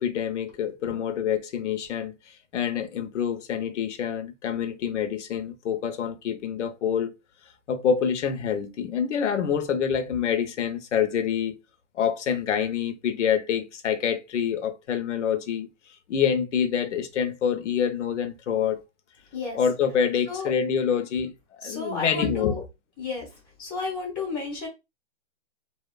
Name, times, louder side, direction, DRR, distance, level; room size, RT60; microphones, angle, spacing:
voice 1, 0.0-7.1 7.7-11.6 11.9-18.8 19.5-22.6, left 7 dB, 75° left, 0.6 m, -26 dB
voice 2, 21.6-22.6 23.0-23.3 23.6-24.7, left 4 dB, ahead, 0.4 m, -32 dB
2.7 x 2.1 x 2.3 m
hypercardioid pair, 165°, 36 cm